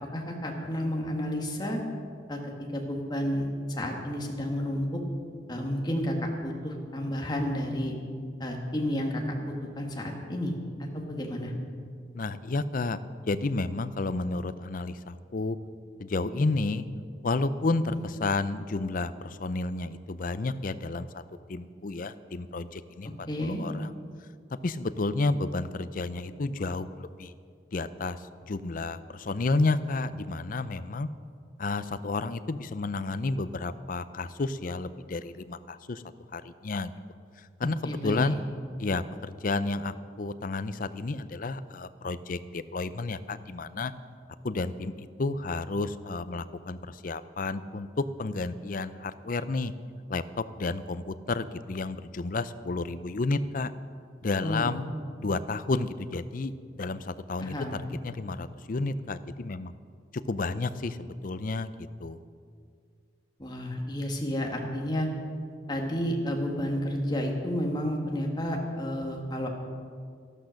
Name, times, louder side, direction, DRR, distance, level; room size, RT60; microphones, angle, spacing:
voice 1, 0.0-1.8 2.3-5.0 5.5-7.9 8.4-10.5 10.8-11.5 17.9-18.0 23.3-23.6 37.6-38.4 54.4-54.8 57.4-57.8 63.4-65.1 65.7-69.5, equal, 25° left, 1 dB, 1.7 m, -31 dB
voice 2, 12.1-13.0 13.3-15.6 16.0-16.9 17.2-21.2 21.5-23.1 23.4-23.9 24.6-27.3 27.7-28.2 28.5-31.1 31.6-36.0 36.3-36.9 37.6-38.4 38.8-43.9 44.4-47.9 48.2-49.7 50.1-53.7 54.2-54.8 55.2-57.5 58.0-59.7 60.3-61.7 62.0-62.2, left 3 dB, 50° left, 13 dB, 0.5 m, -31 dB
13.0 x 12.0 x 6.4 m, 2.2 s
head